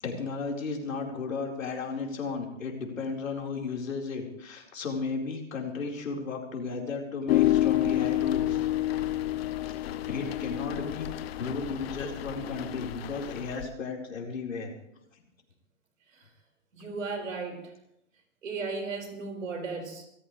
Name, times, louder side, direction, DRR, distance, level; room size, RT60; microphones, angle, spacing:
voice 1, 0.0-8.7 9.6-9.7 10.0-14.7, left 4 dB, 85° left, -1 dB, 4.6 m, -34 dB
sound 1, 7.3-13.7, left 14 dB, 50° left, 1.1 m, -29 dB
voice 2, 10.0-10.4 16.1-16.3 16.7-17.7 18.4-20.1, right 4 dB, 80° right, 4 dB, 5.3 m, -36 dB
25.5 x 14.5 x 3.3 m, 0.79 s
hypercardioid pair, 130°, 39 cm